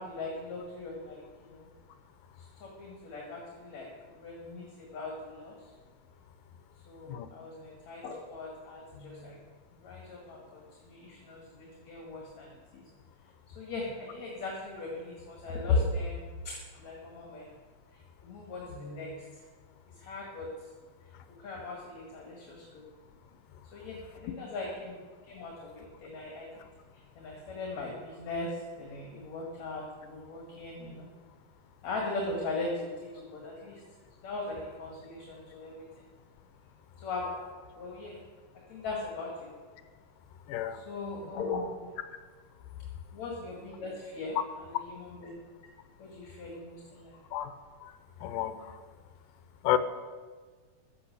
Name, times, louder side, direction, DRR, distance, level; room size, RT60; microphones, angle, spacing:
voice 1, 0.0-1.7 2.4-5.7 6.9-9.4 9.7-12.8 13.6-17.5 17.9-19.4 19.9-20.5 21.4-22.9 23.7-25.0 25.2-26.5 27.1-31.1 31.8-33.8 34.2-35.9 37.0-37.3 37.7-38.2 38.7-39.5 40.7-41.9 43.1-45.3 46.0-47.1, left 3 dB, 55° left, -2 dB, 3.0 m, -38 dB
voice 2, 40.5-40.8 47.3-47.5 47.8-47.9 48.2-48.7 49.6-49.8, left 12 dB, 80° left, 11 dB, 2.4 m, -30 dB
15.0 x 8.6 x 6.7 m, 1.5 s
omnidirectional pair, 3.9 m